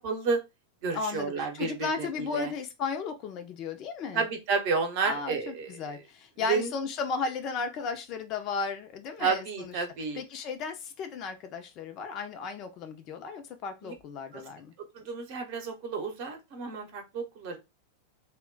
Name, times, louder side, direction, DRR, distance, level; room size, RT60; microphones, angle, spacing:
voice 1, 0.0-0.4 0.8-2.5 4.1-6.0 6.5-6.7 9.2-10.2 13.8-13.9 14.3-14.4 14.9-17.6, right 5 dB, 45° right, 0.8 m, -31 dB
voice 2, 0.9-4.2 5.0-9.7 10.1-14.7, left 5 dB, 35° left, 0.4 m, -35 dB
2.1 x 2.1 x 3.7 m
figure-of-eight pair, 90°, 0 cm